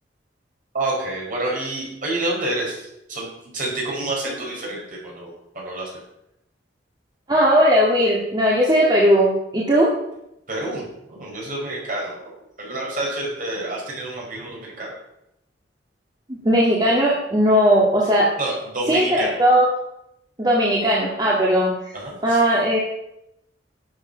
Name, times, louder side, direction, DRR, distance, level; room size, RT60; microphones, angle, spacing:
voice 1, 0.7-3.3 3.5-5.9 10.5-12.2 12.6-14.9 18.4-19.4 21.9-22.4, right 2 dB, 50° right, -3 dB, 5.0 m, -28 dB
voice 2, 7.3-9.9 16.4-18.3 18.9-19.7 20.4-21.7 22.2-22.8, equal, 25° right, -5 dB, 2.0 m, -17 dB
12.0 x 7.9 x 5.7 m, 0.83 s
head